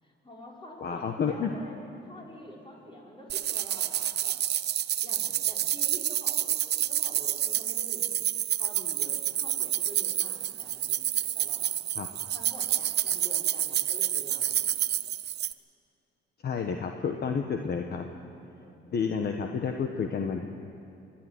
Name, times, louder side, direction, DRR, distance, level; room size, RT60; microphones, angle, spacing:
voice 1, 0.0-4.4 5.0-11.7 12.3-14.7 18.5-19.3, equal, 25° left, -3 dB, 5.7 m, -48 dB
voice 2, 0.8-1.5 11.9-12.1 16.4-18.1 18.9-20.4, left 6 dB, 55° left, 4 dB, 1.3 m, -30 dB
sound 1, 3.3-15.5, right 11 dB, 55° right, 0.6 m, -29 dB
23.5 x 12.0 x 9.6 m, 2.7 s
cardioid pair, 90°, 20 cm